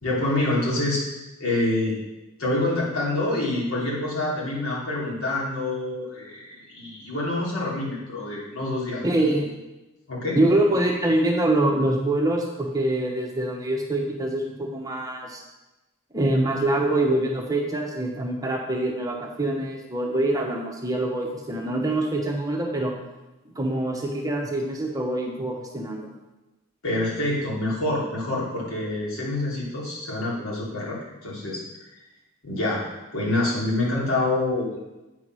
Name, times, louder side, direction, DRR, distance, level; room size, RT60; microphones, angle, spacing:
voice 1, 0.0-1.0 1.4-2.0 2.4-9.0 10.1-10.4 26.8-31.9 32.4-32.8 33.1-34.8, left 2 dB, 80° left, -5 dB, 3.0 m, -26 dB
voice 2, 9.0-9.5 10.3-15.4 16.1-22.9 23.4-26.1, right 1 dB, 15° right, 0 dB, 0.9 m, -25 dB
8.3 x 4.7 x 6.1 m, 1.0 s
head